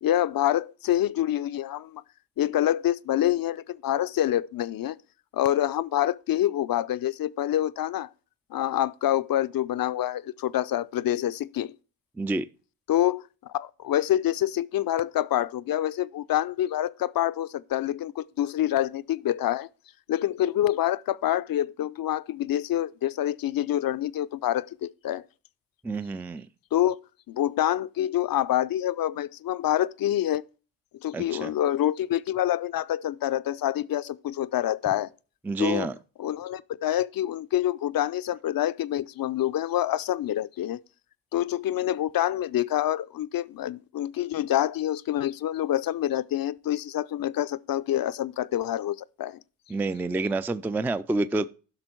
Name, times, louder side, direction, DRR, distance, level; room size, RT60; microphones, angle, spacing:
voice 1, 0.0-2.0 2.4-5.0 5.3-8.1 8.5-11.7 12.9-19.7 20.1-25.2 26.7-27.0 27.3-30.4 31.0-35.1 35.6-35.9 36.2-40.8 41.3-49.4, left 12 dB, 45° left, 0.6 m, -26 dB
voice 2, 12.2-12.5 25.8-26.5 31.1-31.5 35.4-36.0 49.7-51.5, right 2 dB, 5° right, 0.3 m, -28 dB
10.5 x 6.0 x 4.5 m
supercardioid pair, 70°, 50 cm